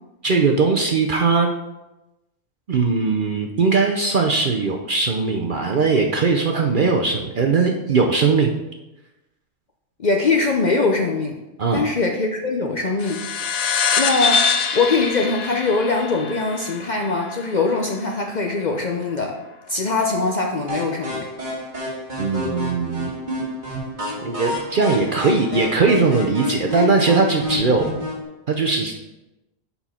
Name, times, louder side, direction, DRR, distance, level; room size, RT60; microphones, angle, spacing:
voice 1, 0.2-1.5 2.7-8.5 11.6-11.9 22.2-23.1 24.2-27.9 28.5-29.0, right 4 dB, 50° right, 2 dB, 0.6 m, -20 dB
voice 2, 10.0-11.4 11.7-13.2 14.0-14.5 14.7-19.4 19.7-21.3, left 3 dB, 45° left, 2 dB, 0.6 m, -22 dB
sound 1, 13.0-17.9, left 5 dB, 80° left, 1.1 m, -24 dB
sound 2, 20.7-28.2, left 1 dB, 35° right, 2.3 m, -29 dB
7.1 x 5.6 x 4.3 m, 0.98 s
omnidirectional pair, 1.4 m